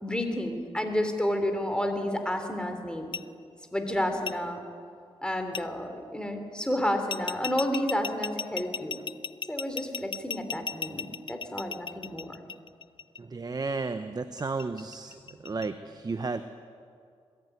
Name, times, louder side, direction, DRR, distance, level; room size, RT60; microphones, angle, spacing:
voice 1, 0.0-3.1 3.7-4.6 5.2-9.0 9.5-12.3, left 1 dB, 10° left, 6 dB, 3.4 m, -30 dB
sound 1, 3.1-3.2 4.3-4.4 5.5-5.6 7.1-13.2 14.4-15.7, left 5 dB, 50° left, 0.5 m, -35 dB
voice 2, 13.2-15.1 15.4-16.4, right 3 dB, 35° right, 9 dB, 0.9 m, -33 dB
21.5 x 14.0 x 9.5 m, 2.3 s
cardioid pair, 60°, 11 cm